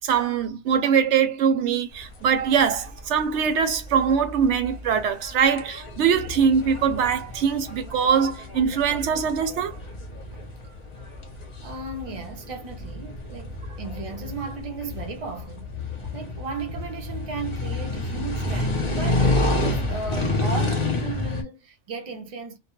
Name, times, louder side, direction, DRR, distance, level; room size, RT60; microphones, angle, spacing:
voice 1, 0.0-9.8, right 7 dB, 80° right, 0.9 m, -22 dB
Walking in Berlin at night with traffic, 1.9-21.4, left 2 dB, 35° left, 0.5 m, -30 dB
voice 2, 11.6-15.8 16.1-22.6, right 4 dB, 45° right, 0.5 m, -35 dB
2.2 x 2.1 x 2.9 m
omnidirectional pair, 1.2 m